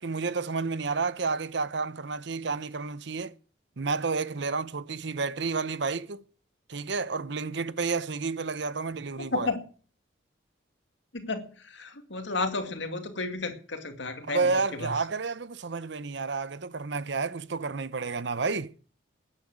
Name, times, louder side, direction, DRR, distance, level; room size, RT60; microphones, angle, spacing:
voice 1, 0.0-3.3 3.8-6.2 6.7-9.5 14.3-18.7, right 4 dB, 65° right, 0.8 m, -30 dB
voice 2, 9.2-9.7 11.1-14.9, left 3 dB, 70° left, 2.3 m, -33 dB
13.0 x 10.0 x 8.9 m
head